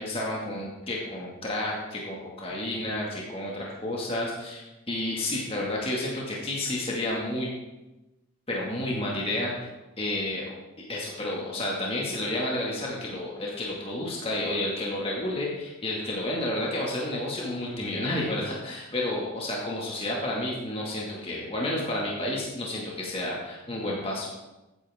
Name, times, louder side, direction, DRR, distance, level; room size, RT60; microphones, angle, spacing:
voice 1, 0.0-7.5 8.5-9.5 10.0-10.5 10.9-24.3, left 1 dB, 25° left, -3 dB, 2.2 m, -31 dB
14.5 x 9.6 x 3.7 m, 1.0 s
head